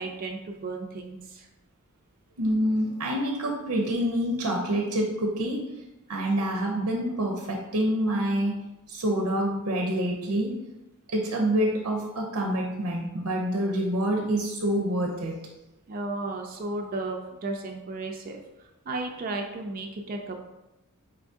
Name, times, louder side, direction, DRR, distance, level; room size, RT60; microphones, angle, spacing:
voice 1, 0.0-1.5 15.9-20.4, right 2 dB, 40° right, 2 dB, 0.4 m, -34 dB
voice 2, 2.4-5.7 6.1-8.6 8.9-10.6 11.1-15.4, right 1 dB, 85° right, 1 dB, 0.6 m, -27 dB
4.6 x 2.6 x 3.5 m, 0.96 s
head